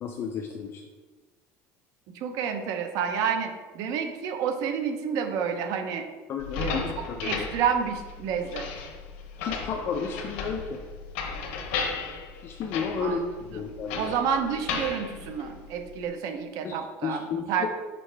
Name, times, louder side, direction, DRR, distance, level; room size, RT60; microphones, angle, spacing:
voice 1, 0.0-0.8 6.3-7.4 9.4-10.8 12.4-13.2 13.5-14.1 16.6-17.7, left 6 dB, 35° left, 4 dB, 0.4 m, -32 dB
voice 2, 2.1-6.1 6.5-8.7 13.0-13.2 14.0-17.7, right 7 dB, 60° right, 6 dB, 0.8 m, -29 dB
sound 1, 6.4-16.1, left 5 dB, 85° left, 0.9 m, -35 dB
5.4 x 5.2 x 3.3 m, 1.3 s
cardioid pair, 150°, 7 cm